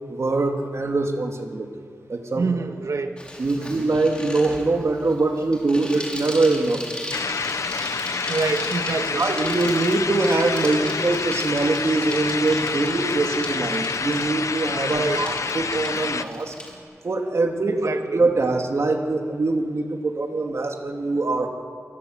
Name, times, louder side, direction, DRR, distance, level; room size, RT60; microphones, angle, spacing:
voice 1, 0.1-1.8 2.1-2.5 3.4-6.8 9.1-16.5 17.0-21.5, right 2 dB, 60° right, 2 dB, 3.0 m, -23 dB
voice 2, 2.4-3.1 3.6-3.8 8.3-9.2 14.9-15.2 17.7-18.2, right 4 dB, 80° right, 5 dB, 2.2 m, -26 dB
Bicycle, 3.2-16.7, left 1 dB, 20° left, 5.6 m, -37 dB
sound 1, 7.1-16.2, left 4 dB, 75° left, 0.9 m, -28 dB
29.0 x 23.5 x 8.3 m, 2.3 s
wide cardioid pair, 80°, 5 cm